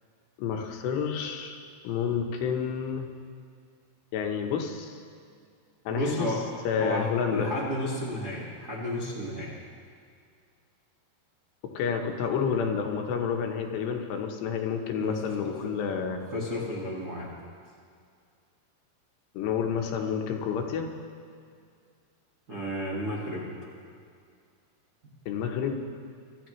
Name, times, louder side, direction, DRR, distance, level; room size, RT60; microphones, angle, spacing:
voice 1, 0.4-1.6 1.8-3.1 4.1-5.0 5.9-6.3 6.6-7.5 11.6-16.2 19.3-20.9 25.3-25.8, left 7 dB, 80° left, 3 dB, 3.2 m, -29 dB
voice 2, 5.9-6.4 6.8-9.5 15.0-15.7 16.3-17.3 22.5-23.4, left 1 dB, 55° right, -5 dB, 1.0 m, -32 dB
24.5 x 13.0 x 3.2 m, 2.2 s
omnidirectional pair, 5.0 m